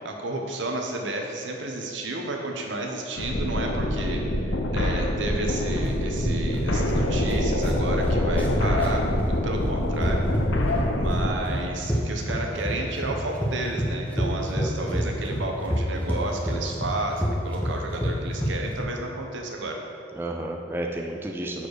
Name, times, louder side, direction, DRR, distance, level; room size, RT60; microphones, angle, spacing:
voice 1, 0.0-10.6 10.9-19.8, right 2 dB, 80° right, 2 dB, 0.9 m, -32 dB
sound 1, 3.2-11.3, left 1 dB, 85° left, 0.7 m, -25 dB
sound 2, 5.8-18.8, equal, 10° left, 0.7 m, -28 dB
voice 2, 14.5-15.2 20.1-21.7, right 1 dB, 10° right, 0 dB, 0.3 m, -32 dB
6.8 x 4.4 x 4.8 m, 2.7 s
head